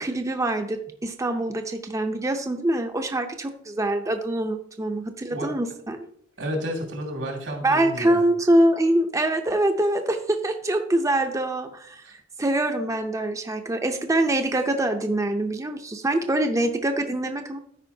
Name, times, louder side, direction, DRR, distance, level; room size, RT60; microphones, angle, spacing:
voice 1, 0.0-6.0 7.6-12.0 12.4-17.6, right 1 dB, 15° right, 5 dB, 0.6 m, -24 dB
voice 2, 6.4-8.2 12.0-12.1, equal, 85° right, 1 dB, 2.3 m, -31 dB
13.5 x 4.9 x 2.7 m, 0.65 s
head